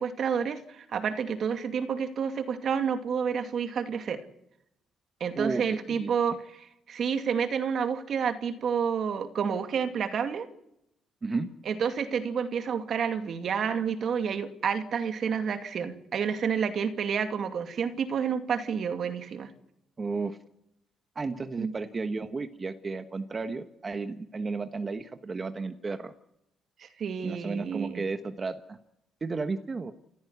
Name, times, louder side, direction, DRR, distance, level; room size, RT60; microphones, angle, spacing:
voice 1, 0.0-4.2 5.2-10.5 11.7-19.5 21.6-21.7 26.8-28.0, right 7 dB, 60° right, 8 dB, 2.5 m, -29 dB
voice 2, 5.3-6.1 11.2-11.5 20.0-20.4 21.1-26.1 27.2-28.8 29.2-29.9, right 4 dB, 30° right, 8 dB, 1.3 m, -33 dB
28.5 x 14.5 x 8.2 m, 0.83 s
cardioid pair, 90°, 0 cm